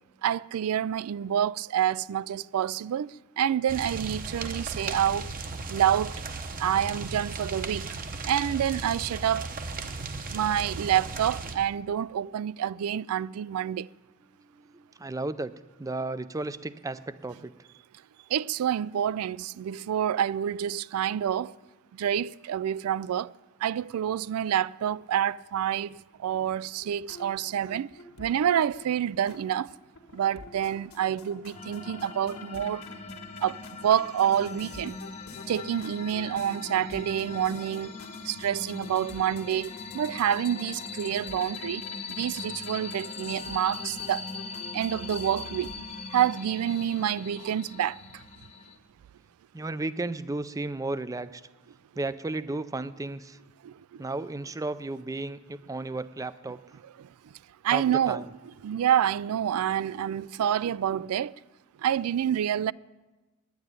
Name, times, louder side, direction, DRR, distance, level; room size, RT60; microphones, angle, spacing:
voice 1, 0.2-5.3 5.7-6.2 6.6-8.0 8.2-9.5 10.3-13.9 18.3-21.5 21.9-23.3 23.6-27.9 28.2-29.7 30.1-32.8 33.4-35.0 35.5-38.0 38.2-44.3 44.7-45.7 46.1-48.2 53.6-54.0 57.6-58.2 58.6-61.3 61.8-62.7, right 9 dB, 90° right, 0.3 m, -28 dB
sound 1, 3.7-11.6, right 3 dB, 40° right, 0.9 m, -36 dB
voice 2, 14.3-15.5 15.8-17.5 49.5-51.4 51.9-53.4 54.0-56.8 57.7-58.3, right 2 dB, 15° right, 0.4 m, -34 dB
sound 2, 26.8-45.8, left 3 dB, 80° left, 1.6 m, -49 dB
sound 3, 31.5-48.8, left 4 dB, 30° left, 0.9 m, -41 dB
9.9 x 9.4 x 9.5 m
head